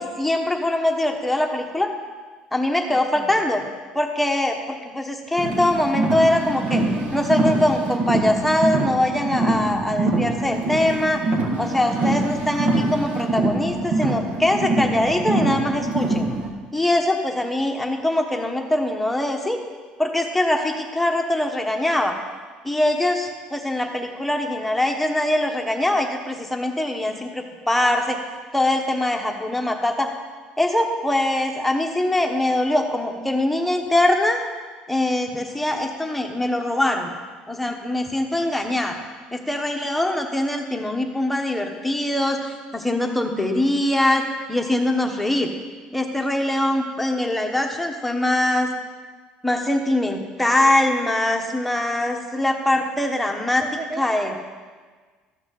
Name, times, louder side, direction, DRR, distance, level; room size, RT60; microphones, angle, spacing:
voice 1, 0.0-1.9 2.5-3.6 3.9-6.8 7.1-11.3 11.6-16.3 16.7-19.6 20.0-22.1 22.6-28.2 28.5-30.1 30.6-34.4 34.9-37.1 37.5-39.0 39.3-45.5 45.9-48.7 49.4-53.6 54.0-54.3, left 1 dB, 5° left, 2 dB, 1.1 m, -22 dB
voice 2, 2.8-3.4 53.6-54.4, right 2 dB, 25° right, 5 dB, 0.6 m, -36 dB
Car, 5.4-16.5, right 2 dB, 60° right, 1.8 m, -24 dB
13.5 x 6.1 x 7.7 m, 1.4 s
cardioid pair, 150°, 3 cm